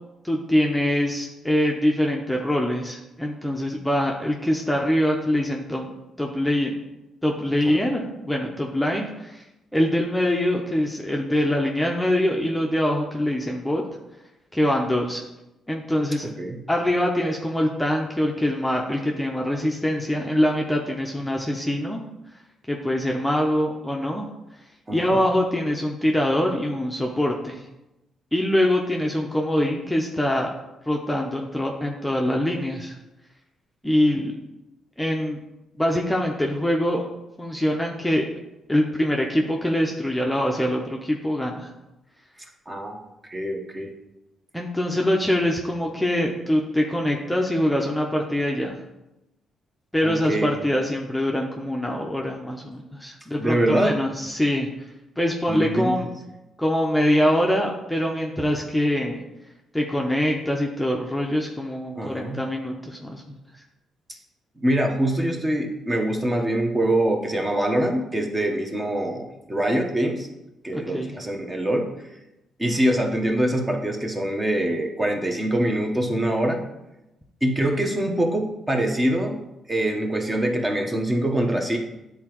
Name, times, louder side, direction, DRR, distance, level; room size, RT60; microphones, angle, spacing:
voice 1, 0.2-5.9 6.2-6.8 7.2-9.4 9.7-13.8 14.5-15.2 15.7-16.3 16.7-22.0 22.7-24.2 24.9-27.6 28.3-30.5 30.9-33.0 33.8-34.4 35.0-35.4 35.8-37.1 37.4-38.3 38.7-41.7 44.5-48.8 49.9-54.7 55.2-56.1 56.6-59.2 59.7-63.4 70.7-71.2, left 1 dB, 5° left, -1 dB, 0.7 m, -24 dB
voice 2, 24.9-25.2 42.7-43.9 50.0-50.5 53.4-54.0 55.5-56.1 62.0-62.5 64.1-64.2 64.6-70.3 70.6-71.9 72.6-76.6 77.4-79.4 79.7-81.8, right 1 dB, 20° right, 2 dB, 1.0 m, -24 dB
9.7 x 3.9 x 3.0 m, 0.95 s
cardioid pair, 90°, 0 cm